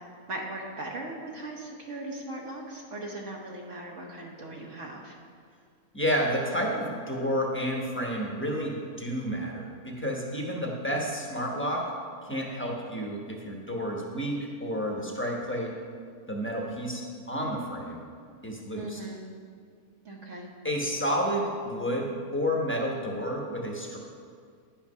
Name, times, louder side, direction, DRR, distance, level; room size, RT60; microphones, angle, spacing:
voice 1, 0.3-5.1 18.8-19.2 20.0-20.5, right 1 dB, 55° right, -1 dB, 1.4 m, -39 dB
voice 2, 5.9-11.9 12.2-15.7 16.3-18.0 18.4-19.0 20.6-24.0, equal, 10° left, -1 dB, 1.0 m, -30 dB
10.5 x 5.8 x 5.6 m, 2.1 s
omnidirectional pair, 1.6 m